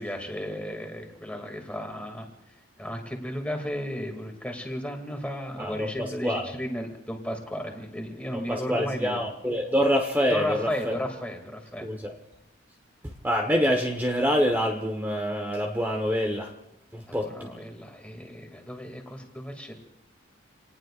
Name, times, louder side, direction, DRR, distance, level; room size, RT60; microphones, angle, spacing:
voice 1, 0.0-2.3 2.8-9.2 10.3-11.9 17.1-19.8, equal, 5° left, 3 dB, 2.4 m, -34 dB
voice 2, 5.6-6.5 8.5-11.0 11.8-12.1 13.2-16.5 16.9-17.5, equal, 10° right, 2 dB, 1.2 m, -26 dB
28.0 x 18.5 x 2.5 m, 0.88 s
head